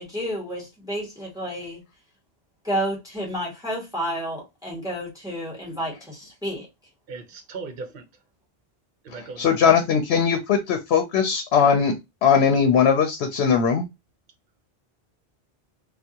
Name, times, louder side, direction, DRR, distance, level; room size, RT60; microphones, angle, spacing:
voice 1, 0.0-1.8 2.6-6.7, equal, 5° right, 1.3 m, -30 dB
voice 2, 7.1-8.0 9.0-9.8, right 4 dB, 60° right, 0.8 m, -38 dB
voice 3, 9.4-13.8, left 6 dB, 85° left, 0.8 m, -20 dB
3.4 x 2.3 x 2.7 m
omnidirectional pair, 1.1 m